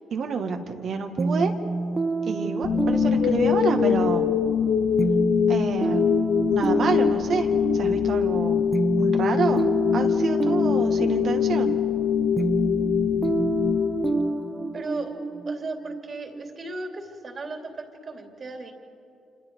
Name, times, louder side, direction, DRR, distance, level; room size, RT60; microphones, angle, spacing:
voice 1, 0.1-1.5 2.2-4.3 5.5-6.1 6.5-7.5 7.7-8.6 8.9-11.8, right 5 dB, 60° right, 5 dB, 2.0 m, -28 dB
sound 1, 1.2-16.8, right 3 dB, 25° right, 0.7 m, -29 dB
sound 2, 2.6-14.7, left 8 dB, 70° left, 0.6 m, -23 dB
voice 2, 14.7-15.1 15.5-18.7, right 3 dB, 45° right, 3 dB, 3.1 m, -36 dB
27.0 x 26.5 x 4.8 m, 2.6 s
cardioid pair, 75°, 0 cm